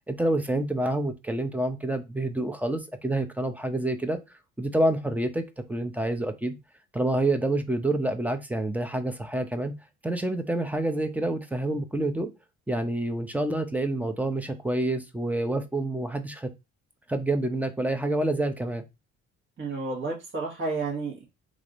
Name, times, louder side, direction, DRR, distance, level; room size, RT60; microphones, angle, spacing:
voice 1, 0.1-4.2 4.6-5.4 5.7-6.6 6.9-9.7 10.0-12.3 12.7-16.5 17.1-18.8, right 1 dB, 5° right, 8 dB, 0.7 m, -27 dB
voice 2, 19.6-21.2, right 3 dB, 40° right, -1 dB, 1.4 m, -31 dB
3.2 x 2.6 x 4.1 m, 0.24 s
cardioid pair, 90°, 30 cm